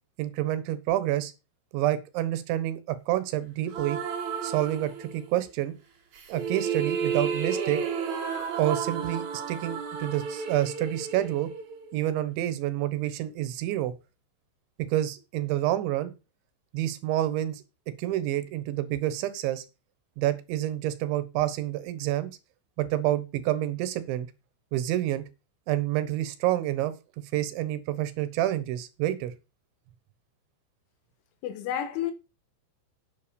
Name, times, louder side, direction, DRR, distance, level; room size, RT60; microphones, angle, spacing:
voice 1, 0.2-1.3 1.7-4.0 4.4-5.7 6.3-7.8 8.6-11.5 11.9-13.9 14.9-16.1 16.7-17.6 18.0-19.6 20.2-22.3 22.8-24.3 24.7-25.2 25.7-26.9 27.3-29.3, right 14 dB, 75° right, 3.4 m, -28 dB
sound 1, 3.7-5.4 6.1-12.2, right 6 dB, 50° right, 2.4 m, -32 dB
voice 2, 31.4-32.1, left 10 dB, 80° left, 3.8 m, -30 dB
9.9 x 7.7 x 5.2 m
omnidirectional pair, 5.5 m